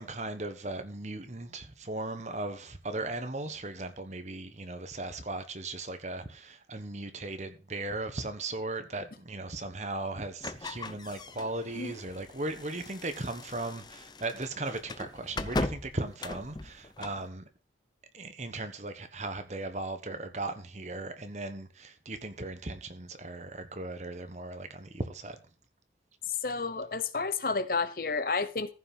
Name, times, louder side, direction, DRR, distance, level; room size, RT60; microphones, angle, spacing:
voice 1, 0.0-17.4 18.1-25.4, right 2 dB, 40° right, 1.3 m, -37 dB
sound 1, 10.4-17.3, left 2 dB, 25° left, 0.6 m, -39 dB
voice 2, 26.3-28.7, left 4 dB, 50° left, 0.8 m, -31 dB
14.5 x 5.9 x 5.5 m
head